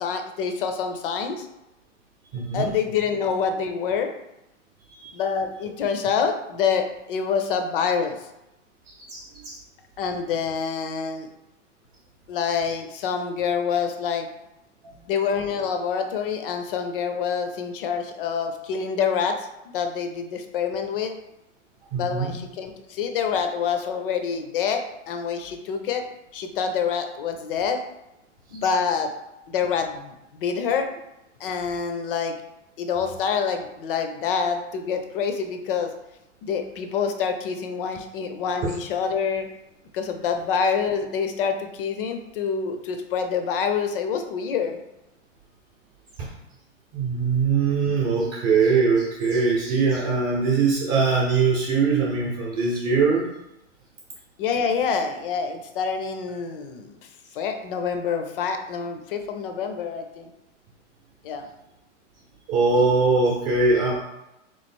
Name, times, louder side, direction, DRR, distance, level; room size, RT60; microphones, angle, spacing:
voice 1, 0.0-1.5 2.5-4.1 5.1-8.3 10.0-11.3 12.3-14.3 15.1-21.1 21.9-26.0 26.3-27.8 28.5-29.1 29.5-30.9 31.4-32.4 32.8-35.9 36.4-39.5 39.9-44.8 54.4-60.3 61.2-61.5, left 6 dB, 45° left, 6 dB, 0.6 m, -26 dB
voice 2, 2.3-2.7 5.0-5.2 9.0-9.6 21.9-22.4 46.2-46.3 46.9-53.3 62.5-64.0, right 4 dB, 30° right, -3 dB, 0.8 m, -22 dB
3.6 x 3.2 x 4.3 m, 0.90 s
hypercardioid pair, 155°, 37 cm